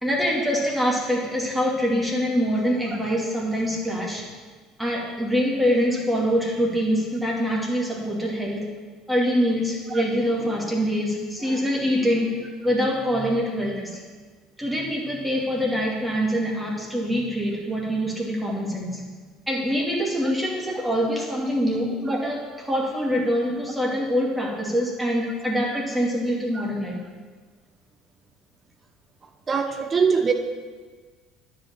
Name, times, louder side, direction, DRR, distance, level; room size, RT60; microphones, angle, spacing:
voice 1, 0.0-4.2 4.8-8.7 9.1-12.4 12.6-14.0 14.6-19.0 19.5-27.0, equal, 5° right, -3 dB, 2.4 m, -24 dB
voice 2, 29.5-30.3, right 5 dB, 30° right, 5 dB, 1.2 m, -22 dB
10.0 x 5.6 x 7.3 m, 1.4 s
figure-of-eight pair, 60°, 0 cm